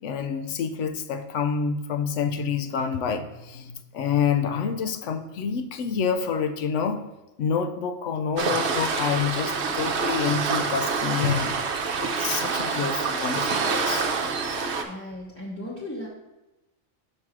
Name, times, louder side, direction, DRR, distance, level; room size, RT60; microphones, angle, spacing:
voice 1, 0.0-7.0 7.4-14.1, left 6 dB, 75° left, 8 dB, 0.9 m, -28 dB
Waves surf, 8.4-14.8, right 5 dB, 65° right, 1.0 m, -26 dB
voice 2, 14.9-16.1, left 1 dB, 10° left, -5 dB, 0.9 m, -36 dB
6.0 x 5.4 x 4.8 m, 0.98 s
omnidirectional pair, 1.3 m